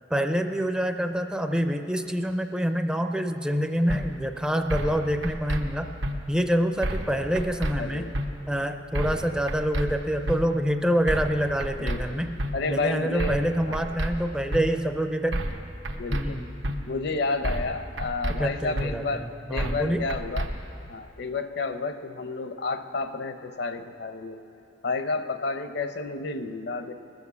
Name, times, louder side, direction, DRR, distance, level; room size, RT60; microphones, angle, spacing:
voice 1, 0.1-5.9 6.3-8.1 8.5-12.3 12.7-15.4 16.1-16.5 18.3-20.0, equal, 5° right, 6 dB, 0.4 m, -26 dB
sound 1, 3.9-4.0 4.7-5.0 5.2-5.6 6.0-6.1 6.8-7.1 7.4-7.7 8.1-8.3 8.9-9.2 9.5-9.9 10.3-10.4 11.1-11.3 11.6-12.0 12.4-12.5 13.2-13.5 13.7-14.1 14.5-14.6 15.3-15.6 15.9-16.2 16.6-16.8 17.4-17.7 18.0-18.4 18.8-18.9 19.6-19.8 20.1-20.5, right 1 dB, 85° right, 1.1 m, -28 dB
voice 2, 7.8-8.1 11.8-12.2 12.5-13.4 13.7-13.8 16.0-16.4 16.9-20.5 20.8-24.4 24.8-26.9, left 3 dB, 65° left, 9 dB, 0.7 m, -31 dB
20.0 x 7.2 x 6.9 m, 2.7 s
head